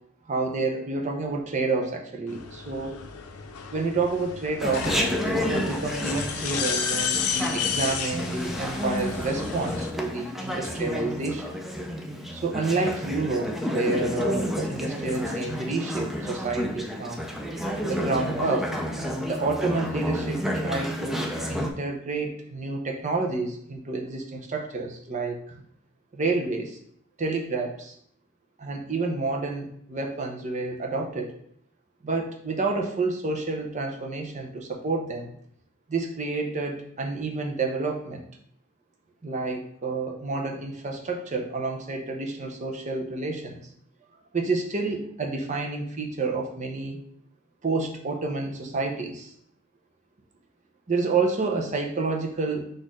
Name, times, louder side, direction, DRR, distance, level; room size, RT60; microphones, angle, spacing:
voice 1, 0.3-3.0 3.7-5.0 5.3-11.5 12.3-17.3 17.9-18.7 19.2-25.6 26.1-26.8 27.2-27.9 28.6-31.3 32.0-35.3 35.9-38.3 39.2-43.6 44.3-47.0 47.6-49.3 50.9-52.7, right 3 dB, 35° right, 1 dB, 0.7 m, -29 dB
sound 1, 2.3-9.9, left 6 dB, 85° left, 0.6 m, -32 dB
Chatter, 4.6-21.7, equal, ahead, 0.4 m, -30 dB
4.2 x 2.6 x 4.7 m, 0.67 s
head